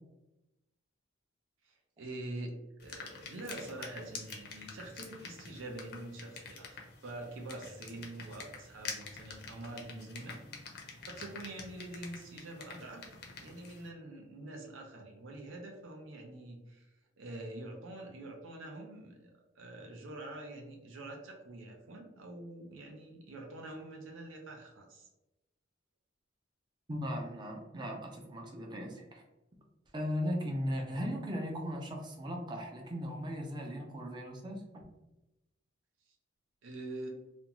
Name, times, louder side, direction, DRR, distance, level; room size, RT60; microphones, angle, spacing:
voice 1, 1.6-2.5 2.8-10.4 11.1-13.1 13.4-16.9 17.2-19.3 19.6-25.1 36.6-37.1, right 2 dB, 80° right, 1 dB, 0.5 m, -45 dB
sound 1, 2.8-13.9, left 4 dB, 55° left, 0.5 m, -47 dB
voice 2, 26.9-29.2 29.9-34.6, equal, 20° right, 1 dB, 0.4 m, -37 dB
2.5 x 2.2 x 2.9 m, 0.98 s
head